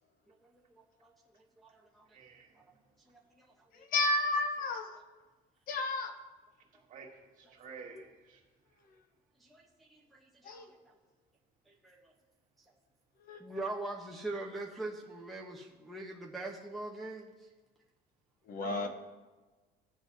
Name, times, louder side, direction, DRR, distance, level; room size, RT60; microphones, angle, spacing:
voice 1, 0.3-0.6 1.0-1.1 1.6-2.1 2.6-2.7 3.1-3.9 7.4-7.5 9.4-10.9 11.7-12.0 13.4-17.3, right 2 dB, ahead, -3 dB, 0.8 m, -43 dB
voice 2, 2.1-2.5 6.9-7.1 7.4-8.4 18.6-18.9, right 5 dB, 50° right, -1 dB, 1.8 m, -48 dB
voice 3, 3.9-5.0 5.7-6.1 10.4-10.7 13.3-13.4 18.5-18.9, left 2 dB, 55° left, 7 dB, 0.9 m, -31 dB
16.5 x 7.1 x 2.7 m, 1.3 s
cardioid pair, 150°, 17 cm